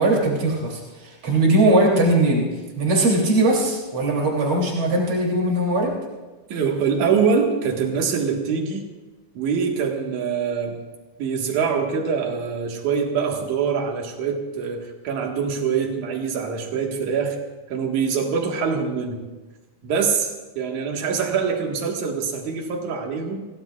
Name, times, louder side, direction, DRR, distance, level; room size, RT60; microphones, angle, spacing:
voice 1, 0.0-2.5 2.8-5.9, right 2 dB, 40° right, -2 dB, 4.0 m, -20 dB
voice 2, 6.5-8.8 9.3-10.8 11.2-17.4 17.7-19.2 19.8-23.5, right 6 dB, 70° right, 1 dB, 3.1 m, -24 dB
26.5 x 17.5 x 2.4 m, 1.2 s
omnidirectional pair, 3.6 m